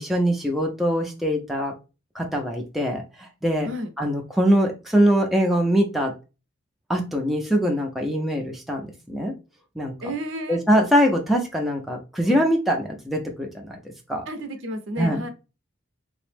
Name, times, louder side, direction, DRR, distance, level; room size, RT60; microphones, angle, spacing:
voice 1, 0.0-1.7 2.1-3.7 4.0-6.1 6.9-9.3 9.8-9.9 10.5-13.8 14.1-14.2 15.0-15.3, equal, ahead, 0 dB, 0.4 m, -23 dB
voice 2, 10.0-10.6 14.3-15.3, equal, 65° right, 8 dB, 0.6 m, -31 dB
3.3 x 2.0 x 3.2 m, 0.30 s
head